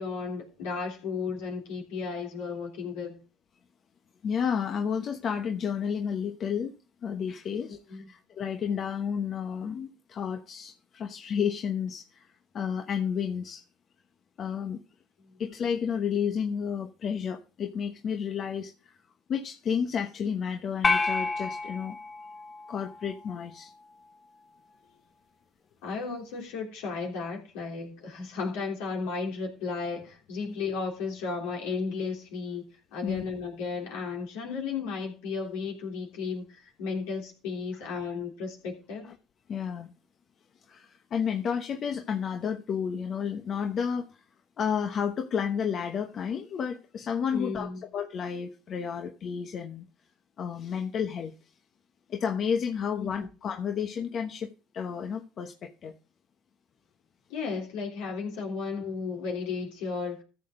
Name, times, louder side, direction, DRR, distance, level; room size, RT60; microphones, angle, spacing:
voice 1, 0.0-3.2 7.7-8.1 25.8-32.7 32.9-39.1 47.3-47.8 53.0-53.1 57.3-60.2, left 5 dB, 75° left, 3.4 m, -34 dB
voice 2, 4.2-12.3 12.5-13.6 14.4-14.8 15.4-19.0 19.3-22.0 22.7-23.7 33.0-33.2 39.5-39.9 40.7-44.2 44.6-49.9 50.4-51.3 52.1-54.5 54.7-55.9, left 7 dB, 50° left, 1.1 m, -31 dB
sound 1, 20.8-23.3, left 4 dB, 30° left, 0.7 m, -30 dB
14.5 x 6.9 x 3.8 m
hypercardioid pair, 70°, 0 cm